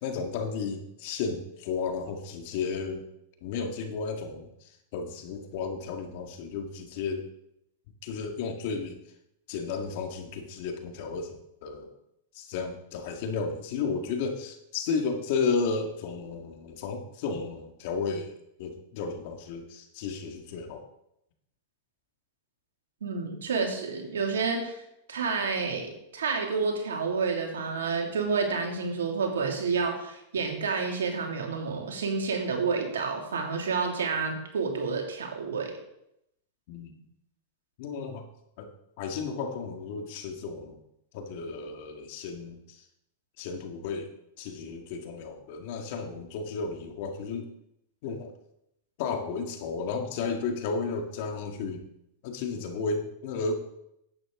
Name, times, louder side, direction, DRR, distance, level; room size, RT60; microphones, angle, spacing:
voice 1, 0.0-3.0 3.4-7.2 8.0-9.0 9.5-11.9 12.3-18.3 18.6-20.8 36.7-37.0 37.8-38.2 38.6-38.7 39.0-40.8 41.1-42.9 43.4-44.1 44.4-47.5 48.0-48.3 49.0-51.8 52.2-53.6, left 5 dB, 60° left, 4 dB, 1.9 m, -33 dB
voice 2, 23.0-24.8 25.1-35.7, right 5 dB, 90° right, 1 dB, 2.5 m, -29 dB
10.5 x 8.7 x 3.8 m, 0.81 s
hypercardioid pair, 120°, 0 cm